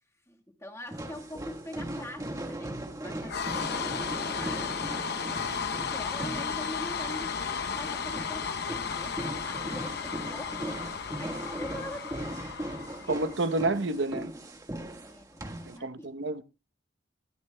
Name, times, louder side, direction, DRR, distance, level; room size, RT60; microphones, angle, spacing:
voice 1, 0.3-4.8 5.2-12.5 12.9-13.2 15.0-16.1, left 1 dB, 15° left, 1.5 m, -44 dB
sound 1, 0.9-15.8, right 1 dB, 15° right, 1.5 m, -39 dB
sound 2, 3.3-13.5, left 6 dB, 55° left, 0.8 m, -34 dB
voice 2, 13.1-14.3 15.7-16.4, right 2 dB, 65° right, 0.8 m, -29 dB
20.5 x 13.5 x 2.2 m
head